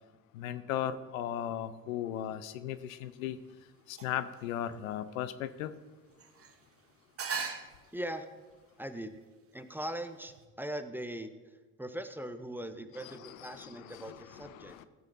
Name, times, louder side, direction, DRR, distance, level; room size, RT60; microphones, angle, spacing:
voice 1, 0.3-3.4 3.9-5.7 13.0-14.9, left 11 dB, 80° left, 13 dB, 0.6 m, -37 dB
sound 1, 2.7-10.5, right 5 dB, 35° right, 1.1 m, -45 dB
voice 2, 7.9-8.3 8.8-9.1 9.5-11.3 11.8-14.8, right 1 dB, 5° right, 9 dB, 0.8 m, -40 dB
15.0 x 8.2 x 2.6 m, 1.4 s
hypercardioid pair, 60°, 41 cm